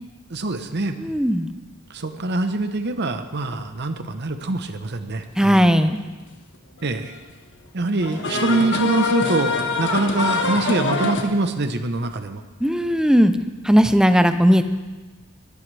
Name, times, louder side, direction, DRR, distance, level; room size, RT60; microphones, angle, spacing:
voice 1, 0.3-1.2 1.9-5.7 6.8-7.1 7.7-12.4, right 3 dB, 50° right, 8 dB, 0.9 m, -24 dB
voice 2, 1.0-1.5 5.4-6.0 12.6-13.3 13.6-14.6, equal, 5° right, 9 dB, 0.6 m, -17 dB
sound 1, 6.1-6.2 7.9-11.2, left 3 dB, 55° left, 1.4 m, -24 dB
21.5 x 14.0 x 3.4 m, 1.3 s
head